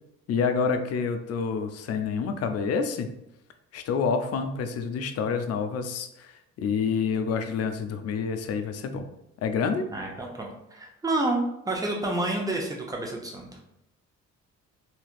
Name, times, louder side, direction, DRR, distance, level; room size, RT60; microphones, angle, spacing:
voice 1, 0.3-3.1 3.7-9.1 9.4-9.9, left 5 dB, 55° left, 8 dB, 0.4 m, -28 dB
voice 2, 9.9-13.6, right 2 dB, 10° right, 0 dB, 0.7 m, -29 dB
3.2 x 2.8 x 2.4 m, 0.84 s
cardioid pair, 90°, 30 cm